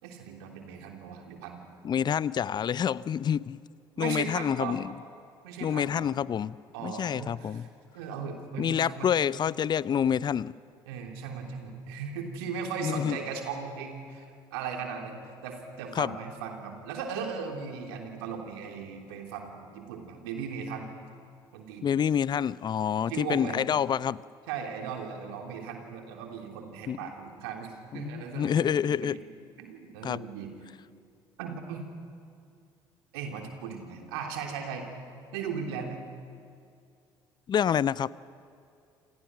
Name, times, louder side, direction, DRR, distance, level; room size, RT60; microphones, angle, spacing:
voice 1, 0.0-1.6 4.0-4.8 5.4-6.1 6.7-7.7 7.9-9.1 10.9-20.9 21.5-22.0 23.1-23.6 24.5-29.2 29.6-30.5 31.4-31.9 33.1-34.9 35.3-36.0, right 6 dB, 70° right, 3 dB, 3.3 m, -37 dB
voice 2, 1.8-3.6 4.0-4.9 5.6-6.6 6.8-7.7 8.6-10.6 12.8-13.2 16.0-16.1 21.8-24.2 26.9-27.1 27.9-29.2 30.0-30.2 37.5-38.1, left 8 dB, 35° left, 21 dB, 0.6 m, -27 dB
29.0 x 26.0 x 6.2 m, 2.4 s
figure-of-eight pair, 55°, 13 cm